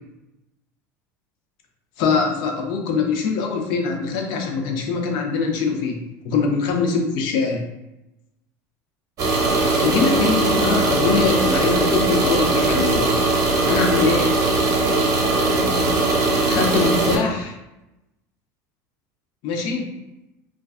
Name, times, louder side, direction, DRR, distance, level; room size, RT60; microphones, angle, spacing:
voice 1, 2.0-7.6 9.8-13.2 13.6-14.3 16.5-17.5 19.4-19.9, left 5 dB, 65° left, 3 dB, 0.5 m, -23 dB
sound 1, 9.2-17.2, right 2 dB, 45° right, 0.7 m, -20 dB
2.3 x 2.3 x 2.4 m, 0.93 s
supercardioid pair, 100°, 8 cm